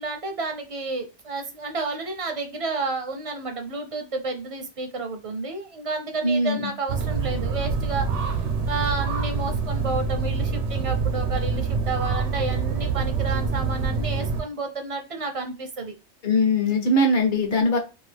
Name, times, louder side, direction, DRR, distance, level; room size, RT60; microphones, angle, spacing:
voice 1, 0.0-8.1 8.7-15.9, right 3 dB, 40° right, 4 dB, 0.5 m, -31 dB
voice 2, 6.2-6.7 16.2-17.8, left 1 dB, 50° left, 3 dB, 0.9 m, -21 dB
sound 1, 6.9-14.4, right 5 dB, 90° right, 1.0 m, -26 dB
2.7 x 2.4 x 3.3 m, 0.29 s
omnidirectional pair, 1.2 m